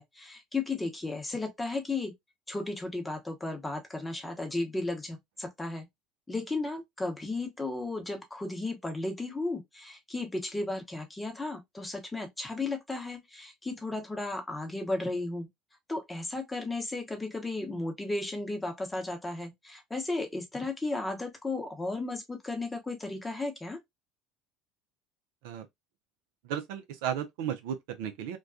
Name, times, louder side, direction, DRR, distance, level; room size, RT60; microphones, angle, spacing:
voice 1, 0.0-2.1 2.5-5.9 6.3-15.5 15.9-23.8, left 2 dB, 15° left, 0.8 m, -34 dB
voice 2, 26.4-28.4, right 9 dB, 75° right, 0.4 m, -34 dB
2.2 x 2.2 x 2.4 m
hypercardioid pair, 75°, 0 cm